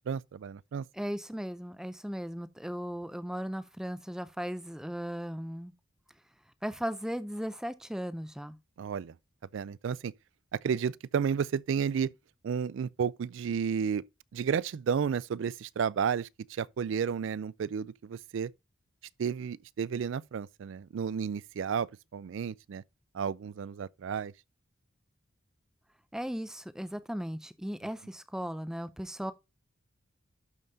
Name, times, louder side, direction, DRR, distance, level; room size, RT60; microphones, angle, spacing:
voice 1, 0.0-0.9 8.8-9.1 9.5-10.1 10.5-12.1 12.4-14.0 14.3-18.5 19.2-22.8 23.1-24.3, right 7 dB, 65° right, 0.3 m, -32 dB
voice 2, 0.9-5.7 6.6-8.6 26.1-29.3, equal, 5° right, 0.4 m, -37 dB
12.0 x 5.5 x 2.7 m
head